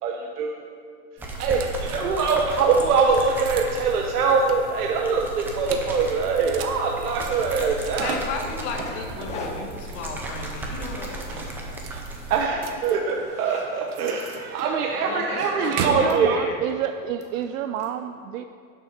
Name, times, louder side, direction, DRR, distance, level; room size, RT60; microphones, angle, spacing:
voice 1, 0.0-0.5 1.4-8.1 12.3-16.5, right 5 dB, 80° right, 1 dB, 1.2 m, -23 dB
sound 1, 1.2-12.5, right 2 dB, 5° right, 0.4 m, -35 dB
Zipper (clothing), 1.4-1.5 1.9-3.2 3.8-4.0 4.3-4.4 4.8-4.9 5.2-6.6 6.8-8.2 8.7-11.6 11.9-12.2 12.6-16.2 17.2-17.9, left 4 dB, 15° left, 0.9 m, -41 dB
sound 2, 1.4-16.1, right 6 dB, 40° right, 1.0 m, -38 dB
voice 2, 1.9-2.9 8.0-11.7 15.0-16.6, left 5 dB, 45° left, 2 dB, 1.7 m, -36 dB
voice 3, 15.8-18.5, right 10 dB, 60° right, 9 dB, 0.5 m, -29 dB
11.5 x 7.4 x 5.8 m, 2.2 s
supercardioid pair, 160°, 45 cm